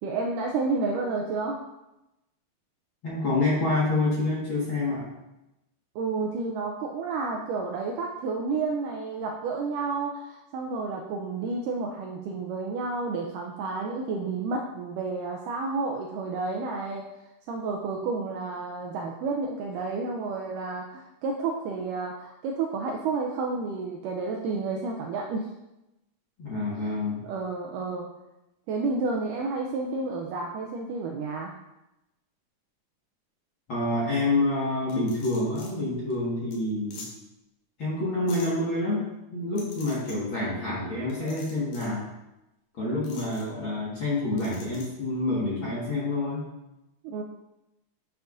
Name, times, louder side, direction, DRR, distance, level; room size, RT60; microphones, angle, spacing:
voice 1, 0.0-1.6 6.0-17.1 17.5-25.5 26.8-26.9 27.2-28.1 28.7-31.5 47.0-47.2, right 4 dB, 85° right, 0 dB, 1.9 m, -31 dB
voice 2, 3.0-5.0 26.4-27.2 33.7-37.0 37.8-39.1 39.3-42.0 42.8-46.4, left 2 dB, 50° left, -8 dB, 1.6 m, -27 dB
sound 1, 34.9-35.7 36.1-36.2 36.5-36.6 36.9-37.1 38.3-38.5 39.6-40.2 41.1-41.9 43.0-43.4 44.4-44.9, left 3 dB, 70° left, 3.2 m, -45 dB
9.3 x 6.8 x 2.5 m, 0.94 s
omnidirectional pair, 4.4 m